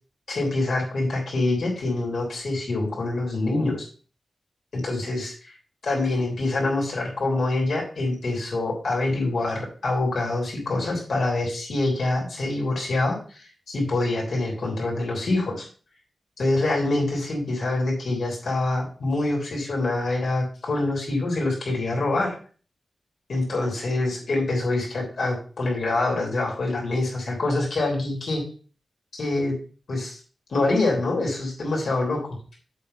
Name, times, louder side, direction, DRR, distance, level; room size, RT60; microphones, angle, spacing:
voice 1, 0.3-3.9 4.7-5.5 5.8-15.7 16.4-22.3 23.3-28.4 29.1-29.6 29.9-30.2 30.5-32.2, left 2 dB, 75° left, -2 dB, 3.3 m, -25 dB
7.6 x 3.9 x 5.3 m, 0.40 s
wide cardioid pair, 160°, 0 cm